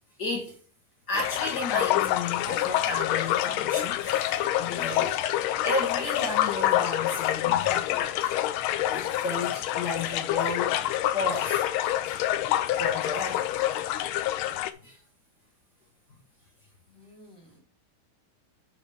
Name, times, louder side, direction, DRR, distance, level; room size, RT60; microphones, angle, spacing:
voice 1, 0.2-0.6 1.1-8.4 8.9-10.8 11.1-12.2 12.8-13.6 14.6-15.0, left 2 dB, 50° left, 1.9 m, -34 dB
sound 1, 1.1-14.7, left 13 dB, 80° left, 1.4 m, -27 dB
voice 2, 16.9-17.6, left 1 dB, ahead, 3.1 m, -53 dB
11.0 x 4.9 x 3.4 m
omnidirectional pair, 2.4 m